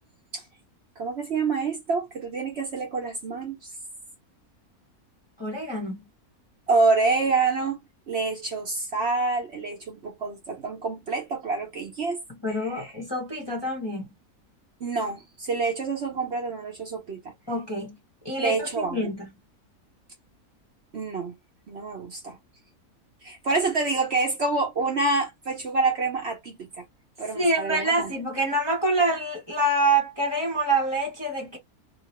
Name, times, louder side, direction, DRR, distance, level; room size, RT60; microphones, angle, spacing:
voice 1, 1.0-3.6 6.7-7.8 8.1-12.2 12.7-12.9 14.8-17.2 18.4-19.0 20.9-21.3 21.7-22.4 23.2-26.8 27.2-28.1, right 3 dB, 55° right, 0.9 m, -27 dB
voice 2, 5.4-6.0 12.4-14.1 17.5-18.0 18.2-19.3 27.3-31.6, right 2 dB, 20° left, 0.8 m, -26 dB
2.9 x 2.4 x 3.0 m
omnidirectional pair, 1.6 m